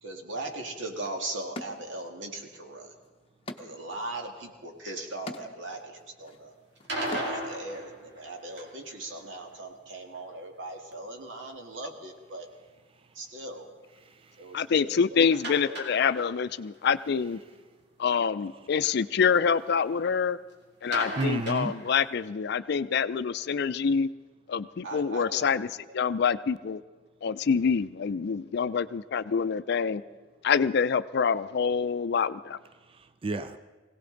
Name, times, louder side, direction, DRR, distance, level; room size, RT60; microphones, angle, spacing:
voice 1, 0.0-2.9 3.6-6.5 7.1-12.5 13.1-13.7 14.4-15.2 15.7-16.0 24.8-25.7, right 2 dB, 85° right, 2 dB, 1.9 m, -39 dB
sound 1, 0.7-0.8 1.5-2.5 2.8-7.6, left 2 dB, 30° left, 0.8 m, -44 dB
sound 2, 6.8-8.9 15.3-16.6 16.8-16.9 17.3-17.4 20.9-22.2, right 1 dB, 65° right, 2.5 m, -36 dB
voice 2, 14.0-14.5 20.8-21.8 32.8-33.6, right 2 dB, 30° right, 11 dB, 0.4 m, -33 dB
voice 3, 14.5-17.4 18.0-20.4 20.8-24.1 24.5-25.7 25.9-26.8 27.2-30.0 30.4-32.6, left 6 dB, 60° left, 14 dB, 0.4 m, -26 dB
21.0 x 17.0 x 3.9 m, 1.4 s
head